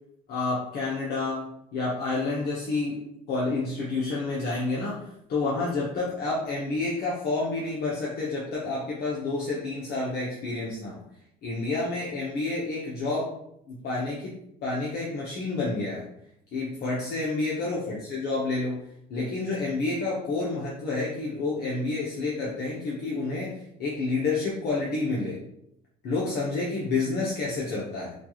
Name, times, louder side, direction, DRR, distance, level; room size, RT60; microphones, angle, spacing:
voice 1, 0.3-3.0 3.3-11.0 11.4-13.3 13.7-14.3 14.6-16.0 16.5-18.8 19.1-25.4 26.0-28.1, left 3 dB, 70° left, -5 dB, 0.9 m, -29 dB
4.3 x 2.4 x 3.0 m, 0.76 s
cardioid pair, 110°, 17 cm